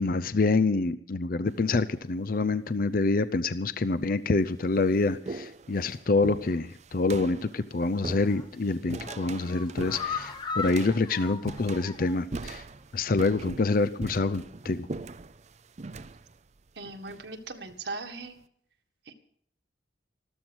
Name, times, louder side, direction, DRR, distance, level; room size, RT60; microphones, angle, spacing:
voice 1, 0.0-12.6 12.9-14.9, left 3 dB, 50° left, 13 dB, 0.6 m, -26 dB
sound 1, 1.5-1.9 2.9-3.0 3.8-3.9 4.3-17.8, right 3 dB, 40° right, 0.5 m, -42 dB
sound 2, 8.1-8.5 8.9-12.3 12.6-12.7 13.1-13.2, left 5 dB, 25° left, 1.2 m, -38 dB
voice 2, 16.8-18.4 19.1-19.2, right 3 dB, 70° right, 4 dB, 1.8 m, -39 dB
14.0 x 13.5 x 6.3 m, 0.68 s
head